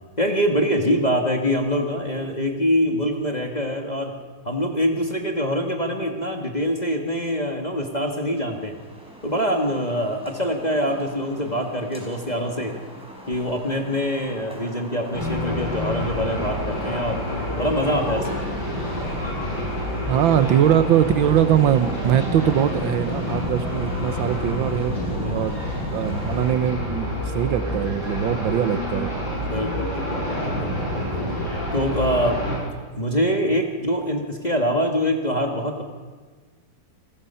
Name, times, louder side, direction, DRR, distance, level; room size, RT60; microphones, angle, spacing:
voice 1, 0.2-4.1 4.4-8.8 9.2-12.7 13.3-17.2 17.6-18.4 25.2-25.4 29.4-31.3 31.7-32.4 33.0-35.8, equal, 25° left, 2 dB, 1.7 m, -24 dB
sound 1, 7.8-26.5, equal, 5° right, 5.2 m, -42 dB
sound 2, 15.1-32.6, left 1 dB, 80° left, 8.7 m, -28 dB
voice 2, 20.0-24.9 25.3-25.6 25.9-27.1 27.3-29.1, right 10 dB, 85° right, 12 dB, 1.8 m, -21 dB
28.5 x 20.5 x 5.7 m, 1.5 s
omnidirectional pair, 2.1 m